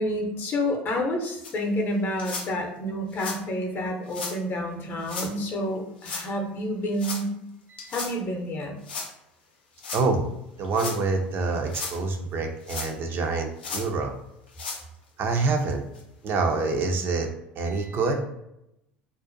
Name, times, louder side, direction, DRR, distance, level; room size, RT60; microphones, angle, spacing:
voice 1, 0.0-7.3 7.9-8.8, equal, 40° left, 2 dB, 0.6 m, -29 dB
sound 1, 1.4-1.5 2.2-2.5 3.1-3.4 4.1-4.4 5.0-5.3 6.0-6.3 7.0-7.2 7.8-8.1 8.8-9.1 9.8-10.0 10.6-11.0 11.5-12.0 12.6-13.1 13.6-13.9 14.5-14.8 15.4-15.5 16.0-16.1 16.8-16.9, left 4 dB, 85° left, 0.4 m, -34 dB
voice 2, 9.9-10.2 10.6-14.1 15.2-15.9 16.2-17.3 17.6-18.2, right 3 dB, 45° right, 3 dB, 0.4 m, -26 dB
2.5 x 2.1 x 2.5 m, 0.83 s
hypercardioid pair, 75°, 5 cm